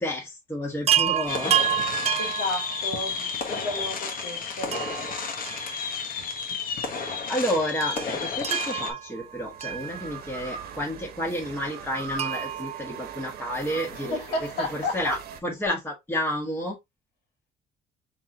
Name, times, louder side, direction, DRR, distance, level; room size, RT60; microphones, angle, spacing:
voice 1, 0.0-1.6 7.3-16.8, equal, 10° left, 1.4 m, -30 dB
Chime, 0.9-3.3 4.7-6.2 6.5-6.6 7.8-10.5 12.2-13.8 15.4-15.5 15.7-15.8, right 10 dB, 40° right, 0.5 m, -29 dB
sound 1, 1.3-8.9, left 5 dB, 55° left, 1.4 m, -32 dB
voice 2, 2.2-4.9 13.9-15.1, left 2 dB, 85° left, 2.4 m, -32 dB
sound 2, 4.5-6.0 7.9-15.4, right 6 dB, 65° right, 1.1 m, -42 dB
4.1 x 3.9 x 3.0 m
cardioid pair, 110°, 17 cm